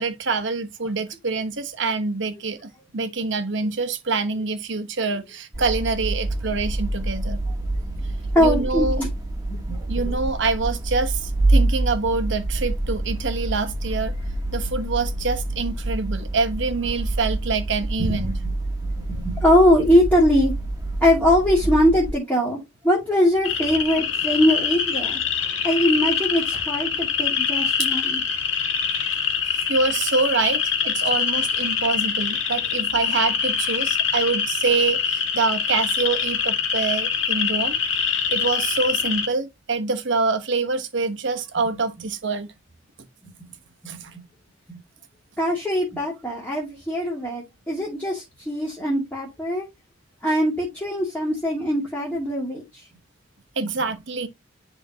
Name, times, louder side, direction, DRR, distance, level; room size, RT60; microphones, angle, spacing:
voice 1, 0.0-7.4 8.4-9.0 9.9-14.1 14.5-18.4 29.5-37.8 38.1-42.5 43.9-44.0 53.6-54.3, right 4 dB, 70° right, 1.0 m, -25 dB
sound 1, 5.5-22.1, right 2 dB, 20° right, 1.4 m, -26 dB
voice 2, 8.3-9.1 9.5-10.1 18.0-18.5 19.0-20.5 21.0-22.6 22.8-25.2 25.6-28.2 43.8-44.2 44.7-44.8 45.4-49.7 50.2-52.9 53.6-53.7, equal, 10° left, 2.1 m, -22 dB
sound 2, 23.4-39.3, left 7 dB, 75° left, 1.8 m, -24 dB
10.5 x 3.7 x 2.8 m
head